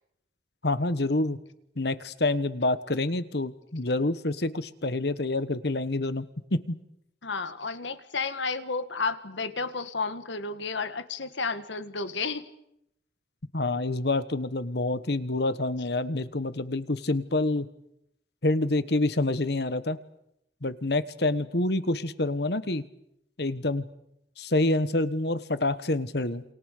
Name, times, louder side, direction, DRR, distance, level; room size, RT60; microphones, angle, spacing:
voice 1, 0.6-1.4 1.8-6.2 6.5-6.8 13.5-17.7 18.4-20.0 20.6-22.8 23.4-23.9 24.4-26.4, left 2 dB, 60° left, 14 dB, 1.3 m, -27 dB
voice 2, 7.2-12.4, left 4 dB, 80° left, 11 dB, 1.7 m, -32 dB
28.0 x 27.5 x 6.7 m, 0.79 s
head